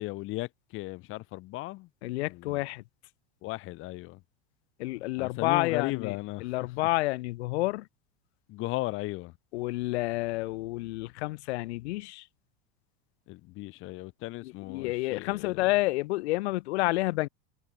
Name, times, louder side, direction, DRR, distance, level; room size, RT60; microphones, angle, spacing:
voice 1, 0.0-1.9 2.3-2.6 3.4-4.2 5.2-6.5 8.5-9.3 13.3-15.7, left 20 dB, 40° left, 2.3 m, -36 dB
voice 2, 2.0-2.8 4.8-7.9 9.5-12.3 14.4-17.3, left 20 dB, 80° left, 0.7 m, -29 dB
supercardioid pair, 160°, 33 cm